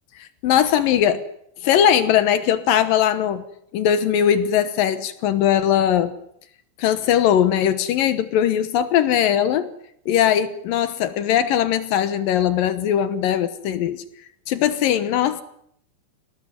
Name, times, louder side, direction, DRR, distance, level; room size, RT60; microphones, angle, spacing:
voice 1, 0.2-1.2 1.6-3.4 3.7-6.2 6.8-9.7 10.1-14.0 14.5-15.4, left 10 dB, 90° left, 11 dB, 1.9 m, -20 dB
29.0 x 19.0 x 9.5 m, 0.73 s
omnidirectional pair, 5.8 m